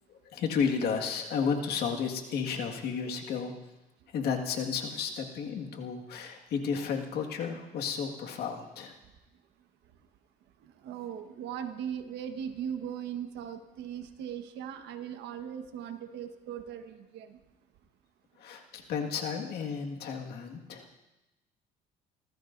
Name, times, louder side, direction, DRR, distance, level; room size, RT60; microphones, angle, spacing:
voice 1, 0.1-3.5 4.1-8.9 18.4-21.0, left 6 dB, 70° left, 2 dB, 1.9 m, -32 dB
voice 2, 10.8-17.4, right 9 dB, 85° right, 7 dB, 1.4 m, -39 dB
26.5 x 14.5 x 2.7 m, 1.0 s
cardioid pair, 110°, 17 cm